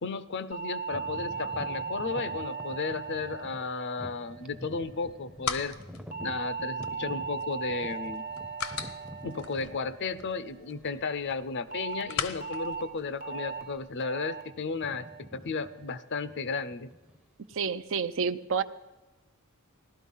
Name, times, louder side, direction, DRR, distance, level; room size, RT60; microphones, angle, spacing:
voice 1, 0.0-5.8 6.2-8.2 9.2-16.9, left 4 dB, 55° left, 14 dB, 0.6 m, -34 dB
sound 1, 0.5-5.0 6.1-10.6 11.7-12.0 12.4-12.8 13.2-13.6 14.0-14.4 14.8-15.2 15.6-16.0, right 5 dB, 40° right, 1.1 m, -38 dB
sound 2, 0.9-10.7 11.3-11.4 12.1-12.3 12.6-12.8 13.5-14.0 14.3-17.7, equal, 5° right, 0.7 m, -47 dB
sound 3, 4.9-13.8, left 7 dB, 75° left, 1.0 m, -41 dB
voice 2, 17.5-18.6, right 6 dB, 60° right, 12 dB, 0.6 m, -29 dB
16.5 x 12.0 x 5.5 m, 1.1 s
head